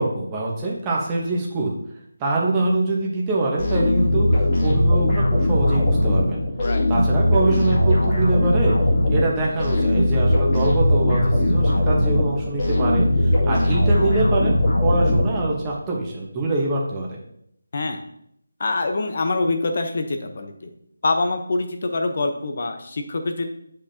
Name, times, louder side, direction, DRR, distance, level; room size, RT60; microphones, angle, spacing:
voice 1, 0.0-1.7 2.2-6.4 6.9-8.8 9.1-17.1, right 2 dB, 15° right, -3 dB, 1.2 m, -24 dB
sound 1, 3.6-15.8, left 1 dB, 25° left, 2.2 m, -19 dB
voice 2, 18.6-20.7 21.0-23.5, left 3 dB, 45° left, 6 dB, 0.9 m, -25 dB
8.2 x 5.3 x 2.9 m, 0.74 s
figure-of-eight pair, 165°, 0 cm